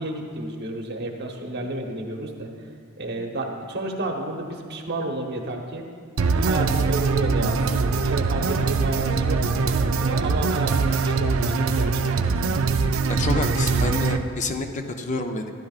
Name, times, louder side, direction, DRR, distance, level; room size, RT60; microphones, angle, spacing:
voice 1, 0.0-2.5 3.0-5.9 6.3-9.4 10.0-12.4, right 2 dB, 55° right, 2 dB, 1.1 m, -31 dB
sound 1, 6.2-14.2, right 4 dB, 80° right, 0.5 m, -22 dB
voice 2, 13.1-14.7 15.0-15.5, left 3 dB, 35° left, 4 dB, 0.6 m, -28 dB
13.5 x 11.5 x 2.4 m, 2.2 s
head